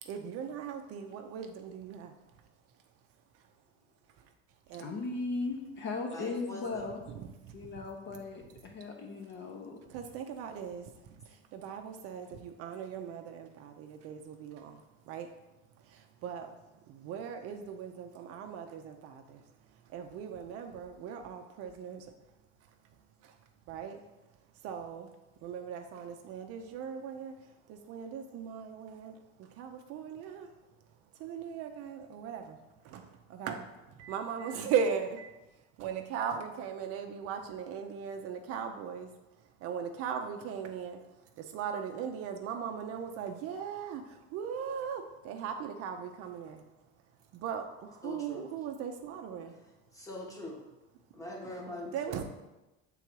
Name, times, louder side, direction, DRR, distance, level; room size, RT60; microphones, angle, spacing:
voice 1, 0.0-2.5 3.3-3.5 4.1-4.3 4.7-5.0 7.1-7.7 8.1-8.2 9.9-15.4 15.8-22.3 22.6-24.1 24.5-25.1 25.4-30.6 30.9-35.3 35.8-46.7 47.2-49.6 51.4-51.5 51.9-52.2, right 7 dB, 50° right, 0.6 m, -39 dB
voice 2, 4.8-7.0 7.5-9.8, left 3 dB, 35° left, 1.0 m, -37 dB
voice 3, 6.1-6.9 48.0-48.5 49.9-50.7 51.1-52.2, left 1 dB, 10° left, 1.1 m, -43 dB
7.0 x 3.9 x 4.6 m
cardioid pair, 150°, 31 cm